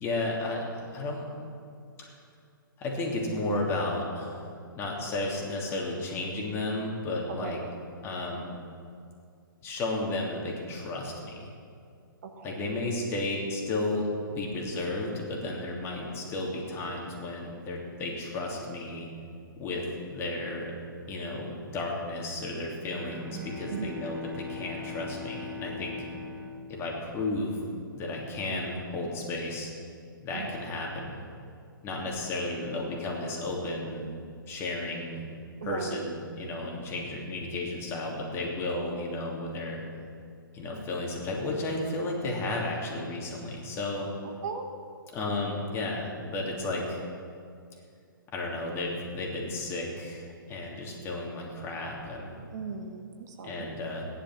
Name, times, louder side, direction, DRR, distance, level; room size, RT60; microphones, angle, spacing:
voice 1, 0.0-1.2 2.0-2.1 2.8-7.6 8.0-8.5 9.6-11.5 12.4-19.1 19.6-20.7 21.1-26.0 26.7-27.6 27.9-29.7 30.2-31.2 31.8-34.0 34.5-35.2 35.6-39.8 40.5-44.1 45.1-47.0 48.3-52.4 53.4-54.1, left 2 dB, 20° left, -2 dB, 3.0 m, -33 dB
voice 2, 12.2-12.7 23.7-24.1 30.3-30.6 35.6-36.1 44.2-44.7 52.5-53.7, right 5 dB, 50° right, 5 dB, 1.4 m, -38 dB
Bowed string instrument, 22.8-27.7, left 3 dB, 15° right, 1.2 m, -41 dB
16.0 x 11.0 x 6.2 m, 2.3 s
figure-of-eight pair, 125°, 12 cm